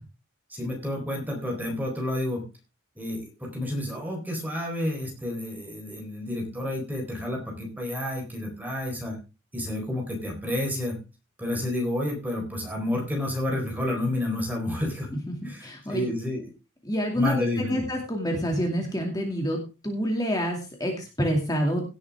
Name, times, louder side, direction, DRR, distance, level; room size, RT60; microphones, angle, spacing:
voice 1, 0.5-2.4 3.0-9.2 9.5-11.0 11.4-15.1 15.4-16.5 17.1-17.9, left 1 dB, 10° right, 1 dB, 4.0 m, -30 dB
voice 2, 15.3-16.1 16.8-17.4 17.7-19.6 19.8-21.8, equal, 20° left, 1 dB, 2.4 m, -27 dB
17.5 x 8.4 x 3.6 m, 0.30 s
head